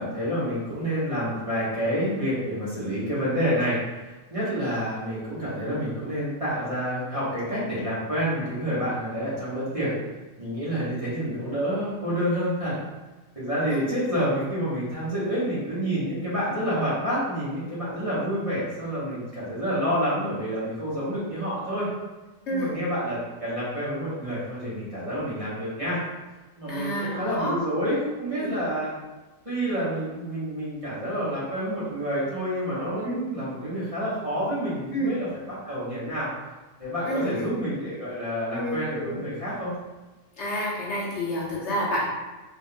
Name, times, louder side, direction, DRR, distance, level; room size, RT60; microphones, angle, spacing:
voice 1, 0.0-3.8 4.0-9.9 10.4-12.8 13.3-21.9 22.5-26.0 26.6-28.9 29.4-36.3 36.8-39.7, equal, 25° right, -10 dB, 1.2 m, -28 dB
voice 2, 26.7-27.6 28.4-28.5 33.0-33.2 34.9-35.1 37.0-37.5 38.5-39.2 40.4-42.0, equal, 65° left, -5 dB, 1.1 m, -29 dB
3.8 x 3.6 x 2.2 m, 1.2 s
omnidirectional pair, 1.4 m